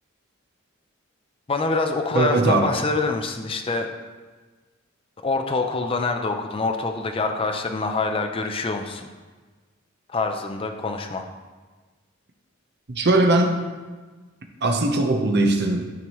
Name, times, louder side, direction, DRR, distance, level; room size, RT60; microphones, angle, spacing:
voice 1, 1.5-3.9 5.2-9.1 10.1-11.3, left 3 dB, 25° left, 5 dB, 0.5 m, -25 dB
voice 2, 2.1-2.7 12.9-13.6 14.6-15.9, right 2 dB, 55° right, 3 dB, 0.9 m, -20 dB
12.5 x 4.7 x 3.0 m, 1.3 s
head